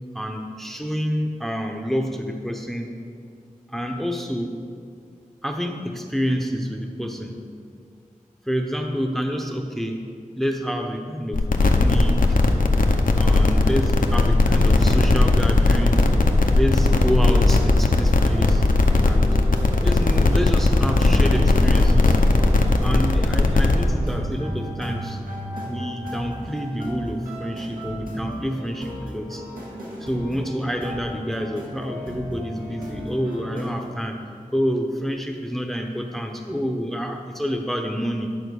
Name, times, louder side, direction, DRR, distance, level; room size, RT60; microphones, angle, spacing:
voice 1, 0.1-3.0 3.7-4.6 5.4-7.4 8.5-10.0 10.4-12.4 13.1-16.1 16.5-18.7 19.0-19.4 19.8-22.2 22.8-25.2 25.6-29.5 30.0-34.2 34.5-38.3, equal, ahead, 3 dB, 0.7 m, -28 dB
sound 1, 11.3-23.8, left 2 dB, 75° left, 0.7 m, -18 dB
sound 2, 16.6-34.0, equal, 85° right, 1.9 m, -36 dB
11.0 x 4.3 x 6.4 m, 2.2 s
wide cardioid pair, 60°, 14 cm